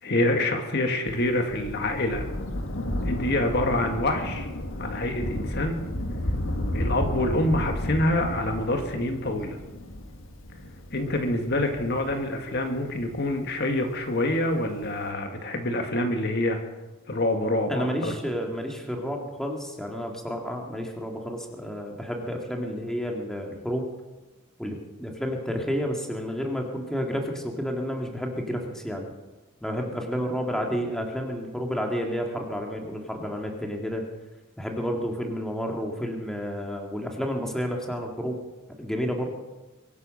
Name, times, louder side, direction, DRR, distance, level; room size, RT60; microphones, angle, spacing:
voice 1, 0.0-2.3 3.0-4.5 4.8-5.8 6.7-9.6 10.9-16.6 17.1-18.2, left 1 dB, 50° left, 4 dB, 1.8 m, -26 dB
Thunder, 1.1-13.9 14.8-14.9, left 1 dB, 70° left, 1.8 m, -32 dB
voice 2, 17.7-23.9 24.6-29.1 29.6-34.0 34.6-38.4 38.8-39.3, equal, ahead, 1 dB, 2.0 m, -30 dB
23.5 x 9.5 x 6.5 m, 1.1 s
head